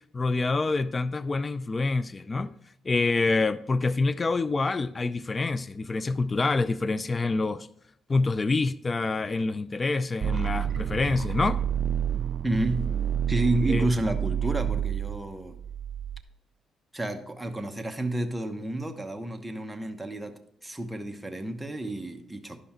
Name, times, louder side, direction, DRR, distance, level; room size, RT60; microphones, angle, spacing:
voice 1, 0.1-2.5 2.8-7.7 8.1-11.6 13.7-13.9, left 3 dB, 30° left, 0.3 m, -26 dB
sound 1, 10.2-16.2, right 9 dB, 55° right, 0.3 m, -29 dB
voice 2, 12.4-12.9 13.3-15.6 16.9-22.6, right 1 dB, 5° right, 1.0 m, -30 dB
11.5 x 5.5 x 4.4 m
cardioid pair, 90°, 0 cm